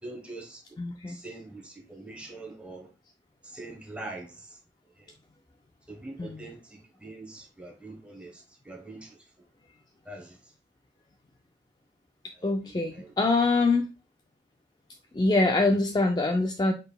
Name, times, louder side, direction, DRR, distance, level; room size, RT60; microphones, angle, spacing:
voice 1, 0.0-0.6 1.1-2.9 3.4-4.6 5.0-5.1 5.9-9.3 10.0-10.5 12.3-13.1, right 2 dB, 5° right, 1.0 m, -44 dB
voice 2, 0.8-1.2 6.2-6.4 12.4-13.9 15.1-16.7, left 3 dB, 25° left, 0.3 m, -24 dB
5.3 x 4.0 x 2.2 m
head